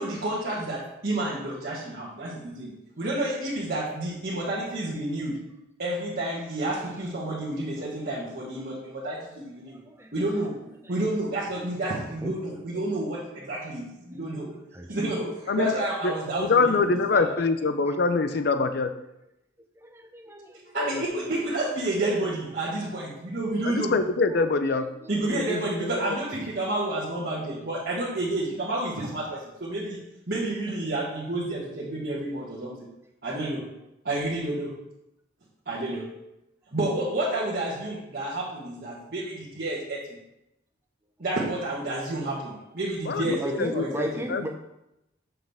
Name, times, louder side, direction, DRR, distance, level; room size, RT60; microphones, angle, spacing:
voice 1, 0.0-5.4 5.8-9.8 10.1-14.5 14.9-17.3 20.7-23.9 25.1-30.0 30.3-32.9 33.2-33.7 34.0-34.8 35.6-36.1 36.7-40.2 41.2-44.2, right 1 dB, 55° right, -7 dB, 1.5 m, -30 dB
voice 2, 9.7-10.1 12.2-12.3 13.7-13.8 14.1-14.3 14.7-14.9 16.9-17.2 19.8-20.6 24.4-25.2 43.3-44.5, equal, 15° right, 3 dB, 0.7 m, -36 dB
voice 3, 16.4-18.9 20.8-21.0 23.7-24.9 25.3-26.2 43.1-43.8 44.3-44.5, left 4 dB, 55° left, 9 dB, 0.5 m, -24 dB
7.6 x 5.9 x 3.5 m, 0.87 s
head